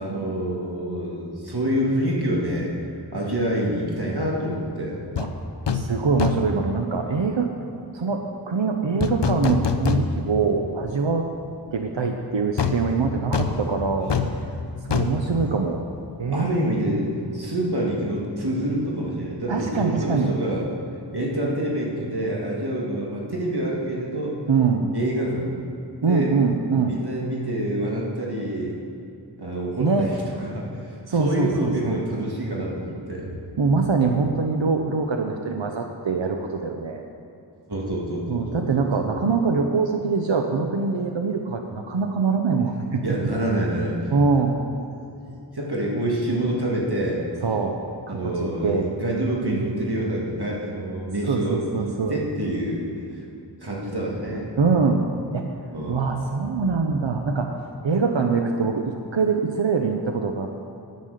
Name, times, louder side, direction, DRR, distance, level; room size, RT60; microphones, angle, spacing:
voice 1, 0.0-2.7 3.1-5.0 16.3-17.1 17.3-20.6 21.1-24.4 24.9-25.5 25.8-26.3 26.8-28.8 29.4-33.3 37.7-39.1 43.0-44.1 45.3-47.2 48.1-52.8 53.1-53.2 53.6-54.5 55.7-56.1, right 1 dB, 60° right, -3 dB, 2.1 m, -27 dB
sound 1, 5.2-5.3 5.7-5.9 6.2-6.6 9.0-10.4 10.8-10.9 12.6-16.2 16.5-16.6, left 5 dB, 70° left, 0.7 m, -25 dB
voice 2, 5.7-7.5 7.9-11.3 11.7-14.1 14.8-15.8 16.2-16.9 19.5-20.4 24.5-24.9 26.0-27.0 29.8-30.1 31.1-32.0 33.6-37.0 38.3-43.0 44.1-44.6 47.4-47.8 48.1-48.9 51.3-52.2 54.6-55.5 55.9-57.6 57.8-60.7, right 4 dB, 90° right, 3 dB, 0.8 m, -23 dB
9.5 x 9.2 x 6.5 m, 2.7 s
wide cardioid pair, 40°, 43 cm